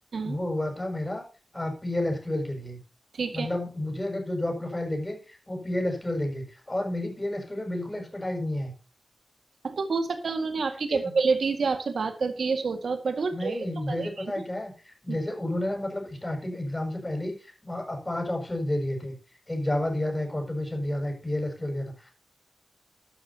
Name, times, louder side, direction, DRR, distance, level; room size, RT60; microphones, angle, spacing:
voice 1, 0.2-1.2 1.5-2.8 3.3-8.7 10.9-11.1 13.3-19.2 19.5-22.1, left 1 dB, 20° left, 2 dB, 7.0 m, -31 dB
voice 2, 3.1-3.5 9.6-14.3 15.1-15.2, right 4 dB, 85° right, 7 dB, 1.9 m, -28 dB
12.5 x 12.5 x 2.9 m, 0.32 s
wide cardioid pair, 100°, 0 cm